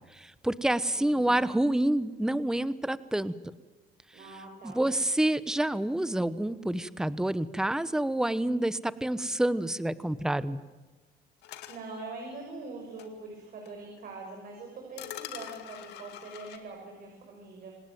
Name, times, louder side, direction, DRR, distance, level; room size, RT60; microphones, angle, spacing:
voice 1, 0.1-3.3 4.6-10.6, right 1 dB, 5° right, 15 dB, 0.9 m, -28 dB
voice 2, 0.9-1.4 4.1-4.9 11.7-17.7, right 3 dB, 55° right, 1 dB, 6.4 m, -43 dB
sound 1, 11.4-11.8 13.0-13.1 13.6-13.7 15.0-16.6, left 12 dB, 85° left, 2.4 m, -43 dB
27.0 x 18.5 x 9.4 m, 1.3 s
cardioid pair, 110°, 17 cm